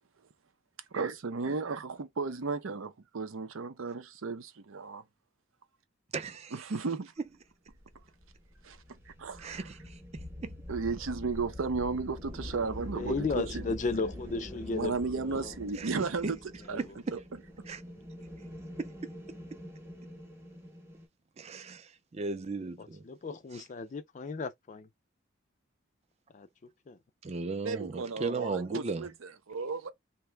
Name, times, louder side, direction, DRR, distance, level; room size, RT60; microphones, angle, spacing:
voice 1, 0.9-5.0 6.5-7.1 8.6-8.8 9.1-9.6 10.7-13.7 14.7-16.4 16.7-16.8 17.1-17.2 27.6-29.9, right 4 dB, 80° right, 0.6 m, -34 dB
voice 2, 6.1-6.6 9.4-10.6 15.7-15.9 16.2-16.4 16.8-17.2 17.7-17.8 18.8-18.9 21.4-23.0 27.2-29.1, right 3 dB, 30° right, 0.4 m, -36 dB
sound 1, 7.7-21.1, left 1 dB, 10° right, 0.8 m, -45 dB
voice 3, 12.9-15.5 16.7-16.9 22.8-24.9 26.3-26.5 26.9-27.0, left 3 dB, 35° left, 0.3 m, -35 dB
2.8 x 2.2 x 3.2 m
head